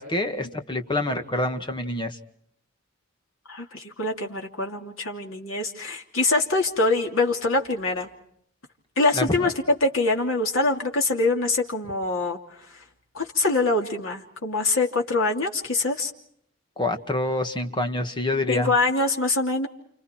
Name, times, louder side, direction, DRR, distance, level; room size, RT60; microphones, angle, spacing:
voice 1, 0.0-2.2 9.2-9.3 16.8-18.7, left 1 dB, 25° left, 6 dB, 2.0 m, -26 dB
voice 2, 3.5-8.1 9.0-12.4 13.1-16.1 18.5-19.7, left 2 dB, 90° left, 2 dB, 2.9 m, -24 dB
30.0 x 29.0 x 4.5 m, 0.69 s
head